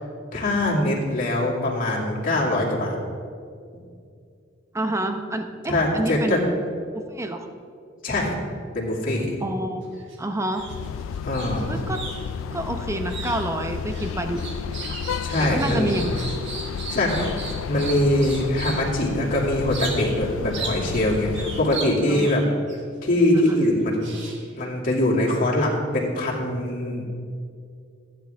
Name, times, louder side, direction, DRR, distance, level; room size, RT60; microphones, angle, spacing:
voice 1, 0.3-3.0 5.7-6.4 8.0-8.3 8.7-9.4 11.2-11.7 15.2-15.9 16.9-17.2 17.7-22.4 23.0-24.0 24.6-27.0, left 1 dB, 45° left, -5 dB, 2.4 m, -23 dB
voice 2, 4.7-6.5 6.9-7.4 9.4-9.9 10.2-10.7 11.7-12.0 12.5-14.4 15.4-16.2 22.1-22.5 23.3-23.6, right 1 dB, 15° right, 6 dB, 0.7 m, -28 dB
sound 1, 9.8-10.2 10.5-18.9 19.7-20.2 20.5-22.8 23.4-24.6, right 3 dB, 65° right, 1.6 m, -37 dB
sound 2, 10.6-21.8, left 7 dB, 70° left, 0.3 m, -32 dB
15.0 x 9.6 x 3.4 m, 2.3 s
head